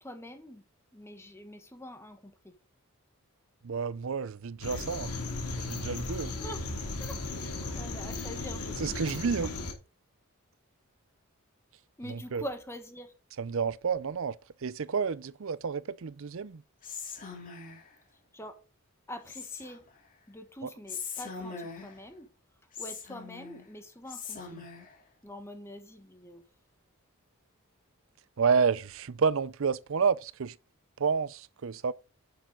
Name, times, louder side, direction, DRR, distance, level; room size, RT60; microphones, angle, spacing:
voice 1, 0.0-0.6 0.9-2.5 6.4-6.6 7.0-9.0 12.0-13.1 18.3-18.6 19.1-19.8 20.3-22.3 22.8-24.6 25.2-26.4, equal, 10° left, 1.3 m, -44 dB
voice 2, 3.6-5.2 5.6-6.3 8.8-9.5 12.1-12.4 13.4-16.6 20.6-20.7 28.4-30.6 31.0-31.9, right 5 dB, 60° right, 0.5 m, -30 dB
sound 1, 4.6-9.7, left 2 dB, 90° left, 2.8 m, -36 dB
Whispering, 16.8-17.9 19.3-20.0 20.9-22.1 22.7-23.7 24.1-24.9, left 5 dB, 35° left, 3.1 m, -41 dB
10.5 x 6.9 x 3.8 m
head